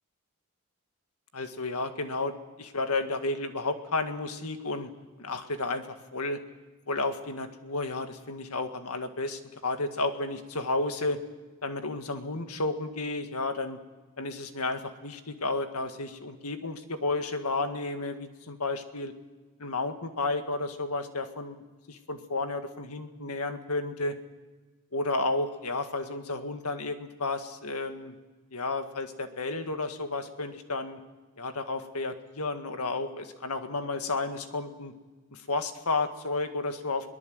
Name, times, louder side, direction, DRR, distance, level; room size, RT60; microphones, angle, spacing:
voice 1, 1.3-4.9 5.2-6.4 6.9-11.2 11.6-13.8 14.2-19.1 19.6-24.1 24.9-28.2 28.5-31.0 31.4-34.9 35.3-37.1, left 3 dB, 85° left, 7 dB, 1.9 m, -32 dB
22.5 x 19.5 x 7.9 m, 1.3 s
head